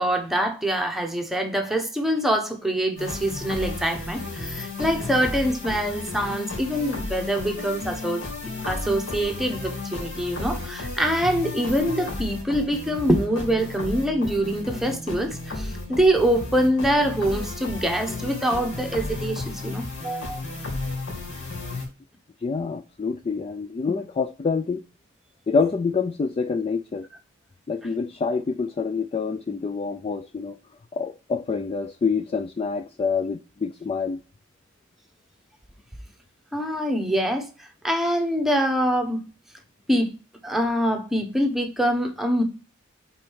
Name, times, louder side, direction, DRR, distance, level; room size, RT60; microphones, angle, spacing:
voice 1, 0.0-8.2 8.7-20.4 36.5-37.5 37.8-39.2 39.9-40.1 40.4-42.4, equal, ahead, 1.0 m, -24 dB
sound 1, 3.0-21.9, left 2 dB, 70° left, 2.7 m, -33 dB
voice 2, 22.4-24.8 25.5-27.1 27.7-30.6 30.9-34.2, left 5 dB, 30° left, 0.3 m, -26 dB
5.3 x 4.3 x 4.6 m
head